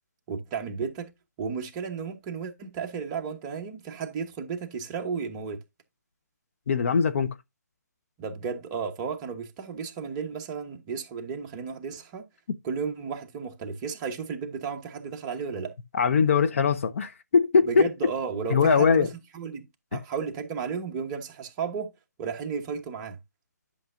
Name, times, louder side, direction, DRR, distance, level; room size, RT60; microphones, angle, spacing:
voice 1, 0.3-1.1 1.4-5.6 8.2-12.2 12.6-15.7 17.7-19.1 19.3-19.6 19.9-21.9 22.2-23.2, right 6 dB, 20° right, 1.1 m, -33 dB
voice 2, 6.7-7.4 15.9-17.8 18.5-19.1 19.9-20.0, left 5 dB, 45° left, 0.9 m, -21 dB
11.0 x 6.4 x 2.5 m
figure-of-eight pair, 155°, 10 cm